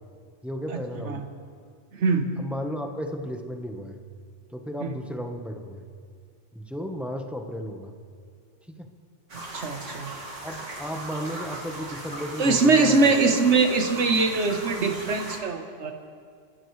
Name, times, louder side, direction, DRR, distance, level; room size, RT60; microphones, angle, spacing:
voice 1, 0.4-1.2 2.4-4.0 4.5-5.8 6.5-7.9 8.8-8.9 10.4-13.2, equal, ahead, 3 dB, 1.1 m, -34 dB
sound 1, 9.3-15.4, right 2 dB, 85° right, 2.5 m, -38 dB
voice 2, 9.5-10.1 12.4-15.9, right 3 dB, 70° right, 5 dB, 1.5 m, -22 dB
30.0 x 13.5 x 3.3 m, 2.1 s
omnidirectional pair, 1.2 m